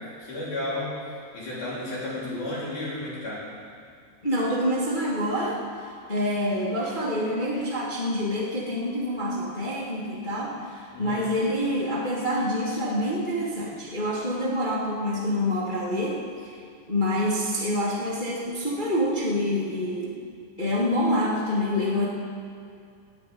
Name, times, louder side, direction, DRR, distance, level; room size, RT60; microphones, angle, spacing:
voice 1, 0.0-3.4 10.9-11.3, left 1 dB, 50° left, -8 dB, 5.0 m, -33 dB
voice 2, 4.2-5.6 6.1-16.6 16.9-20.2 20.6-22.0, left 1 dB, 30° left, -5 dB, 0.8 m, -27 dB
13.0 x 10.5 x 9.4 m, 2.3 s
omnidirectional pair, 4.6 m